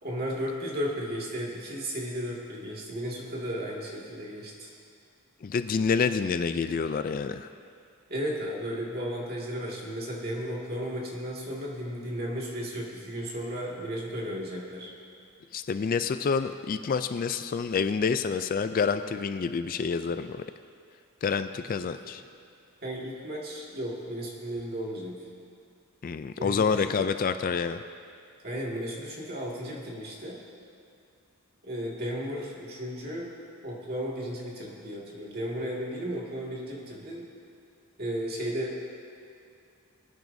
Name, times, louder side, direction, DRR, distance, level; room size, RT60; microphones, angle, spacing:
voice 1, 0.0-4.7 8.1-14.9 21.8-22.1 22.8-25.2 26.4-27.1 28.4-30.4 31.6-33.3 33.6-37.3 38.0-38.9, equal, 45° right, -3 dB, 2.1 m, -34 dB
voice 2, 5.4-7.5 15.5-20.4 21.2-22.2 26.0-27.8, left 5 dB, 40° left, 10 dB, 0.3 m, -28 dB
23.5 x 9.3 x 2.7 m, 2.4 s
head